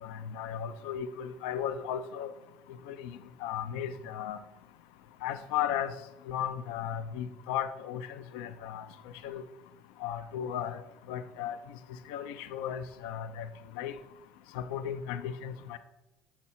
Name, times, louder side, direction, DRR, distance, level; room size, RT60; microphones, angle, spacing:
voice 1, 0.0-2.3 2.9-3.1 3.4-4.4 5.2-5.9 6.3-8.9 9.2-9.4 10.0-10.8 11.1-11.6 12.1-13.5 13.8-13.9 14.5-15.8, left 9 dB, 70° left, 12 dB, 0.4 m, -35 dB
7.4 x 4.2 x 4.2 m, 0.96 s
hypercardioid pair, 65°, 5 cm